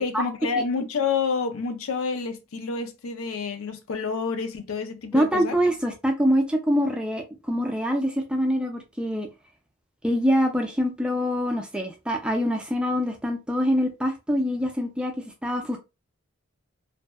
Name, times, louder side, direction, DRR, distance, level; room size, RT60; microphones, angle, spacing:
voice 1, 0.0-5.5, left 5 dB, 80° left, 0.4 m, -28 dB
voice 2, 5.1-9.3 10.0-15.8, equal, 5° right, 0.3 m, -25 dB
2.6 x 2.1 x 2.2 m
head